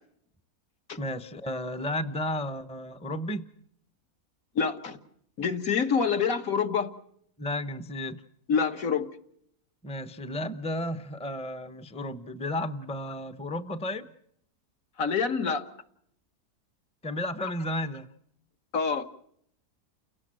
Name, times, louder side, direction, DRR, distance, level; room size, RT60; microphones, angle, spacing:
voice 1, 1.0-3.5 7.4-8.2 9.8-14.1 17.0-18.1, left 1 dB, 5° left, 11 dB, 0.7 m, -33 dB
voice 2, 4.6-5.0 5.4-6.9 8.5-9.1 15.0-15.7 18.7-19.0, left 6 dB, 60° left, 6 dB, 1.8 m, -26 dB
29.5 x 17.5 x 7.6 m, 0.70 s
omnidirectional pair, 1.6 m